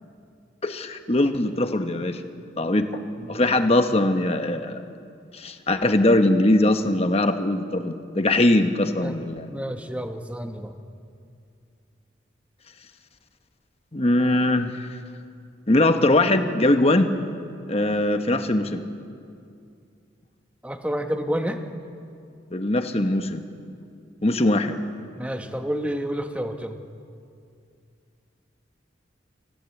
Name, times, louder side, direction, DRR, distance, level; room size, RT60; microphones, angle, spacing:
voice 1, 0.6-2.2 2.6-2.9 3.3-4.8 5.3-9.5 13.9-14.9 15.7-17.1 17.7-18.8 22.5-23.4 24.2-24.7, left 1 dB, 35° left, 7 dB, 1.1 m, -21 dB
voice 2, 9.5-10.7 20.6-21.6 25.2-26.7, equal, 5° right, 5 dB, 1.2 m, -29 dB
24.5 x 15.5 x 8.4 m, 2.4 s
head